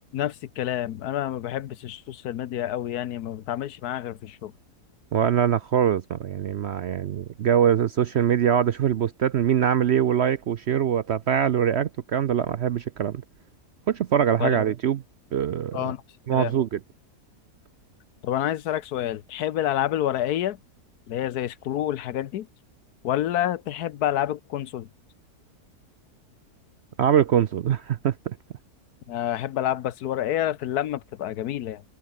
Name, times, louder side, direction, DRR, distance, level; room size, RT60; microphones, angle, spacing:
voice 1, 0.1-4.5 14.4-14.6 15.7-16.0 16.3-16.5 18.2-20.6 21.1-22.5 23.0-24.9 29.1-31.8, left 12 dB, 80° left, 1.3 m, -28 dB
voice 2, 5.1-13.2 13.9-15.0 15.3-15.9 16.3-16.8 27.0-28.4, right 9 dB, 60° right, 0.7 m, -23 dB
open air
omnidirectional pair, 1.6 m